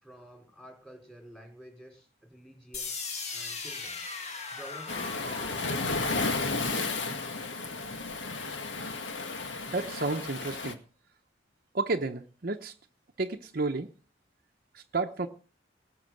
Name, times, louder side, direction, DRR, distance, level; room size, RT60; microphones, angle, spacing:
voice 1, 0.0-3.0 3.3-5.7, equal, 5° left, 4.6 m, -50 dB
sound 1, 2.7-8.7, left 4 dB, 35° left, 1.7 m, -40 dB
Waves surf, 4.9-10.7, left 3 dB, 80° left, 1.9 m, -33 dB
voice 2, 9.7-10.8 11.7-12.7 13.2-13.9 14.7-15.3, right 3 dB, 50° right, 0.8 m, -31 dB
18.5 x 6.8 x 7.7 m
head